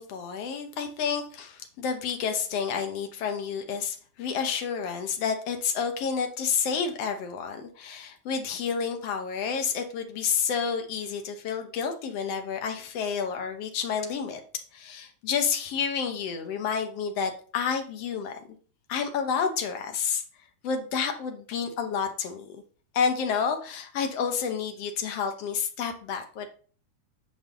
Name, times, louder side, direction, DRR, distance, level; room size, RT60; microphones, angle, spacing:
voice 1, 0.0-14.4 14.7-18.4 18.9-20.2 20.6-22.6 22.9-26.5, left 6 dB, 65° left, 5 dB, 1.7 m, -30 dB
8.5 x 5.4 x 3.8 m, 0.40 s
omnidirectional pair, 3.6 m